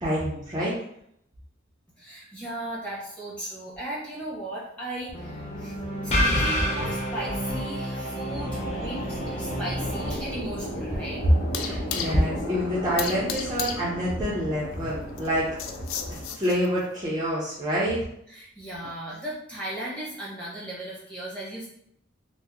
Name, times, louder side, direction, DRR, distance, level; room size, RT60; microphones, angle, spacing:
voice 1, 0.0-0.7 11.6-15.5 16.1-18.0, equal, 20° right, -8 dB, 0.5 m, -27 dB
voice 2, 2.0-5.8 6.0-11.2 18.3-21.7, right 1 dB, 5° left, -7 dB, 1.0 m, -36 dB
sound 1, 5.1-10.1, equal, 30° left, 0.6 m, -28 dB
sound 2, 8.3-16.2, equal, 55° left, 1.5 m, -36 dB
sound 3, 9.1-16.9, left 7 dB, 80° left, 0.3 m, -37 dB
2.8 x 2.0 x 3.6 m, 0.73 s
head